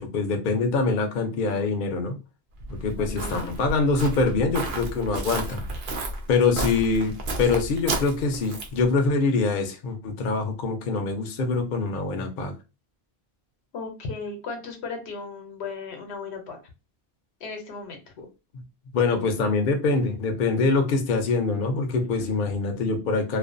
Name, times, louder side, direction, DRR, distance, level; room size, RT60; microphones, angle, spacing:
voice 1, 0.0-2.2 2.7-5.6 6.3-12.5 18.9-23.4, left 4 dB, 60° left, 5 dB, 0.6 m, -24 dB
Walk footsteps, 2.6-8.9, right 2 dB, 60° right, 0.7 m, -32 dB
voice 2, 3.0-3.5 13.7-16.6 17.4-18.0 22.0-22.3, left 4 dB, 85° left, 4 dB, 1.0 m, -36 dB
2.4 x 2.2 x 2.5 m, 0.29 s
omnidirectional pair, 1.1 m